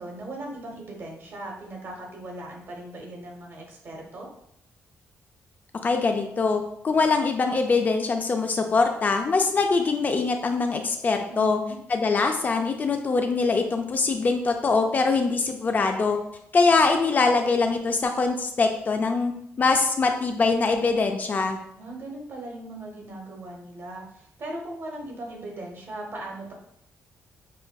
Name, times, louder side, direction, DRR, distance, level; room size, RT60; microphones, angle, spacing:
voice 1, 0.0-4.3 11.3-11.8 21.8-26.5, right 1 dB, 55° right, 0 dB, 1.0 m, -38 dB
voice 2, 5.8-11.6 11.9-16.2 16.5-19.3 19.6-21.6, left 4 dB, 35° left, 5 dB, 0.4 m, -23 dB
5.5 x 2.1 x 2.2 m, 0.74 s
cardioid pair, 110°, 5 cm